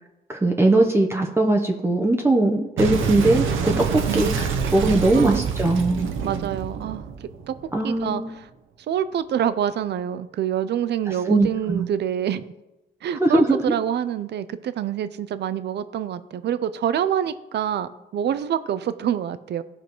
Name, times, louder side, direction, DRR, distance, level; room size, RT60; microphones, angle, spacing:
voice 1, 0.3-6.1 7.7-8.3 11.1-11.9 13.2-13.6, right 2 dB, 10° right, 1 dB, 0.8 m, -20 dB
Boom, 2.8-8.0, right 6 dB, 80° right, 0.9 m, -26 dB
voice 2, 5.1-5.5 6.2-7.1 7.5-7.6 7.8-8.5 8.9-12.5 13.0-19.6, right 9 dB, 60° right, 14 dB, 0.6 m, -26 dB
15.0 x 5.1 x 3.1 m, 0.96 s
cardioid pair, 90°, 20 cm